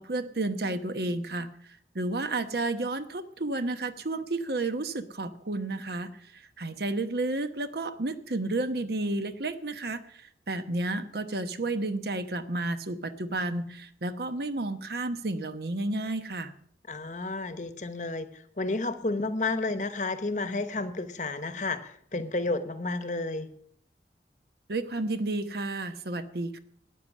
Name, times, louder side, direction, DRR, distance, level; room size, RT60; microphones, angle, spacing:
voice 1, 0.0-1.5 1.9-16.5 24.7-26.6, right 2 dB, 65° right, 11 dB, 1.0 m, -31 dB
voice 2, 16.9-18.3 18.6-23.5, left 2 dB, 45° left, 11 dB, 1.0 m, -31 dB
13.0 x 9.5 x 7.3 m, 0.65 s
head